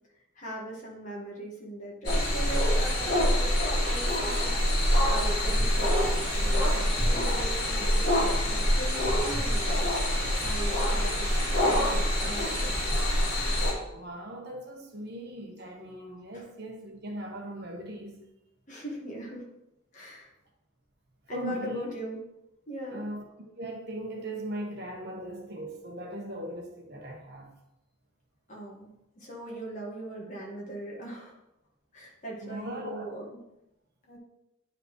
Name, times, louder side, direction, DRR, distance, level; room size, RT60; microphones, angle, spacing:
voice 1, 0.4-3.5 3.8-4.6 5.1-12.9 16.3-16.4 18.7-19.4 19.9-20.3 21.3-22.2 22.7-23.0 28.5-31.4 31.9-33.2 34.0-34.2, right 1 dB, 40° left, -2 dB, 1.7 m, -40 dB
sound 1, 2.0-13.7, equal, 55° left, 2.5 m, -25 dB
voice 2, 13.9-18.2 21.3-21.9 22.9-23.2 23.6-27.5 32.4-33.1, right 1 dB, 55° right, 1 dB, 1.2 m, -39 dB
9.7 x 4.8 x 3.2 m, 0.88 s
head